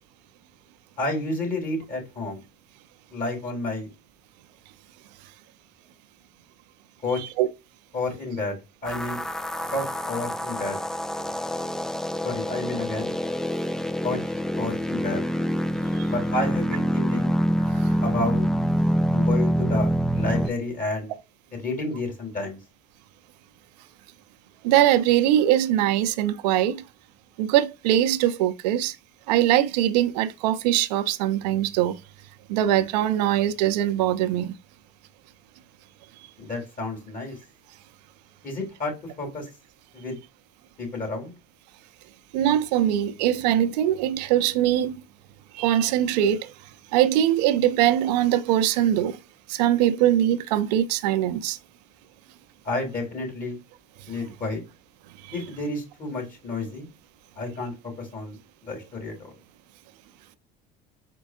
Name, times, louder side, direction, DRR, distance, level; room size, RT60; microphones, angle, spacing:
voice 1, 1.0-2.4 3.1-3.9 7.0-7.2 7.9-8.6 8.8-9.2 9.7-10.8 12.2-13.1 14.0-14.2 14.6-15.2 16.1-17.3 18.0-18.4 19.1-21.1 21.6-22.6 36.4-37.4 38.4-38.9 39.2-39.5 39.9-40.2 40.8-41.3 52.6-53.6 54.1-54.6 55.3-56.9 57.4-57.7 58.0-58.4 58.7-59.3, left 2 dB, 40° left, 2.9 m, -30 dB
sound 1, 8.9-20.5, equal, 5° left, 0.3 m, -26 dB
voice 2, 24.6-26.8 27.4-29.0 29.3-32.0 32.5-34.5 42.3-44.9 45.5-46.5 46.9-49.2 49.5-51.6 55.2-55.3, right 12 dB, 85° right, 0.6 m, -22 dB
4.6 x 4.5 x 2.4 m
supercardioid pair, 80°, 21 cm